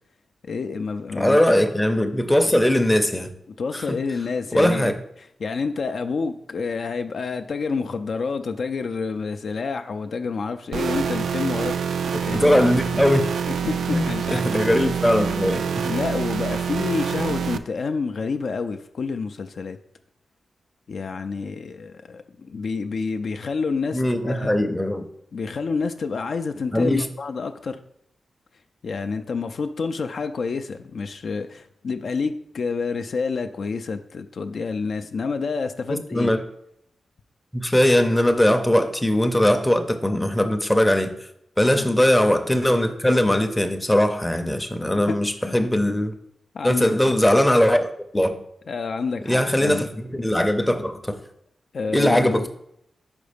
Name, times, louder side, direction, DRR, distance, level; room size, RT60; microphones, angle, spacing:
voice 1, 0.4-1.4 3.6-4.9 5.4-11.8 12.3-12.6 13.5-14.7 15.8-19.8 20.9-24.6 25.3-27.8 28.8-36.3 41.7-41.9 45.1-45.6 46.5-46.9 48.7-49.8 51.7-52.5, left 4 dB, 60° left, 8 dB, 0.4 m, -28 dB
voice 2, 1.1-3.3 3.7-4.0 4.5-5.0 12.3-13.3 13.9-15.9 23.9-25.0 26.7-27.1 35.9-36.4 37.5-41.2 41.6-46.1 46.6-48.4 49.3-51.2 51.9-52.5, left 1 dB, 10° left, 6 dB, 0.6 m, -20 dB
sound 1, 10.7-17.6, right 6 dB, 85° right, 0.3 m, -26 dB
5.2 x 4.7 x 5.0 m, 0.75 s
wide cardioid pair, 130°, 0 cm